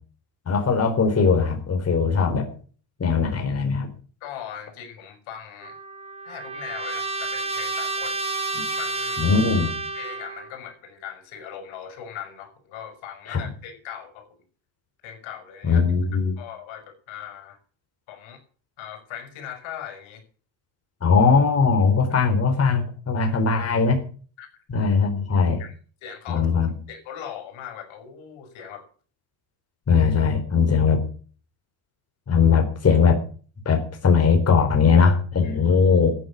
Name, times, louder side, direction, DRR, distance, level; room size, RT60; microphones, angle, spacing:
voice 1, 0.5-2.5 3.0-3.9 8.6-8.7 9.2-9.7 13.3-13.4 15.6-16.3 21.0-24.0 24.7-25.6 26.3-26.7 29.9-31.0 32.3-33.2 33.7-36.2, left 5 dB, 30° left, 4 dB, 4.0 m, -20 dB
voice 2, 4.2-5.8 6.2-8.2 8.7-9.2 9.9-14.3 15.0-15.8 16.4-17.6 18.1-18.4 18.8-20.2 22.1-22.2 23.2-23.3 24.4-24.5 25.6-25.7 26.0-28.9 35.4-35.6, left 9 dB, 75° left, 8 dB, 5.9 m, -39 dB
Trumpet, 5.6-10.5, right 3 dB, 10° right, 3.2 m, -30 dB
14.5 x 9.1 x 8.6 m, 0.43 s
cardioid pair, 115°, 48 cm